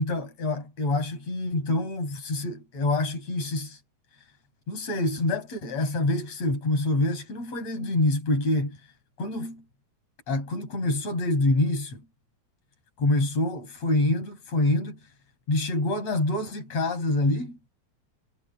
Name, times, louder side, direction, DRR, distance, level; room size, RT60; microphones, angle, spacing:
voice 1, 0.0-3.8 4.7-8.8 9.2-9.6 10.3-12.0 13.0-15.0 15.5-17.6, left 2 dB, 60° left, 8.5 m, -26 dB
omnidirectional pair, 3.3 m